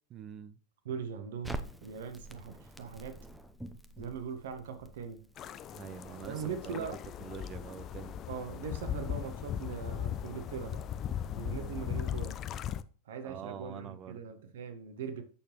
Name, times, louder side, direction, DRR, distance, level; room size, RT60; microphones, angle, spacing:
voice 1, 0.1-0.6 5.7-6.9 7.2-8.2 11.5-11.8 13.2-14.2, right 8 dB, 30° right, 0.7 m, -45 dB
voice 2, 0.8-3.2 4.0-5.3 6.2-7.0 8.3-10.8 11.3-12.4 13.0-15.2, right 6 dB, 60° right, 1.6 m, -40 dB
Crackle, 1.4-7.6, right 1 dB, ahead, 0.9 m, -47 dB
sound 1, 5.4-12.8, left 9 dB, 30° left, 0.5 m, -38 dB
8.8 x 6.7 x 3.1 m
figure-of-eight pair, 90°, 0 cm